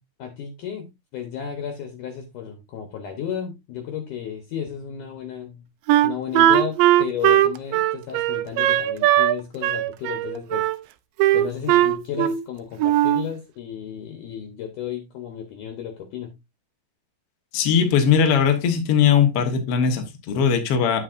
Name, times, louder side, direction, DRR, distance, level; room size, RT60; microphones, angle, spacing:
voice 1, 0.2-5.6 6.0-10.7 11.3-16.3, left 8 dB, 70° left, 2.2 m, -33 dB
Wind instrument woodwind instrument, 5.9-9.4 9.6-10.8 11.2-12.5 12.8-13.3, right 13 dB, 80° right, 2.1 m, -19 dB
voice 2, 17.5-21.0, left 7 dB, 85° left, 1.3 m, -19 dB
8.8 x 8.0 x 2.5 m
omnidirectional pair, 4.5 m